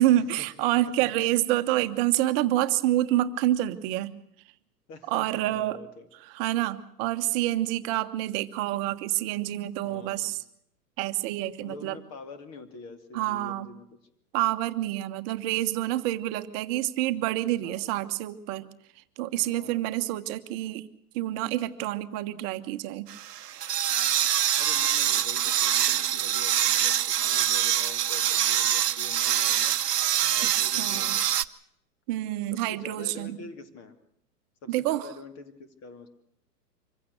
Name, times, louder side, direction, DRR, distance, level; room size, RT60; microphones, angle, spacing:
voice 1, 0.0-4.1 5.1-5.8 6.2-10.4 11.0-12.0 13.1-13.7 14.3-18.7 19.0-20.9 21.1-23.1 30.6-31.1 32.1-33.4 34.7-35.1, right 14 dB, 35° right, 10 dB, 1.2 m, -27 dB
voice 2, 4.9-6.1 9.8-10.4 11.6-13.9 17.6-18.0 19.4-19.9 23.9-29.8 30.2-31.3 32.5-33.9 34.6-36.1, left 3 dB, 30° left, 10 dB, 2.7 m, -45 dB
sound 1, 23.1-31.4, right 11 dB, 75° right, 0.9 m, -25 dB
25.0 x 15.5 x 8.0 m, 0.71 s
hypercardioid pair, 110°, 48 cm